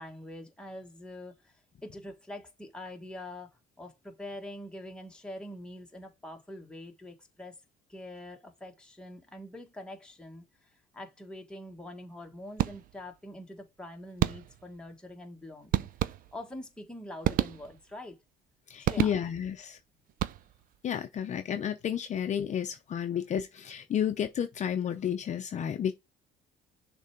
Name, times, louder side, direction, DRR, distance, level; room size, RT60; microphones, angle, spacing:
voice 1, 0.0-3.5 3.8-7.6 7.9-18.2 18.8-19.2, left 1 dB, 5° left, 1.4 m, -44 dB
sound 1, 12.6-13.1 14.2-14.8 15.7-16.6 17.2-18.0 18.8-19.6 20.1-20.8, right 12 dB, 55° right, 0.4 m, -31 dB
voice 2, 18.7-19.8 20.8-25.9, left 9 dB, 45° left, 0.7 m, -31 dB
6.4 x 3.5 x 4.5 m
cardioid pair, 110°, 17 cm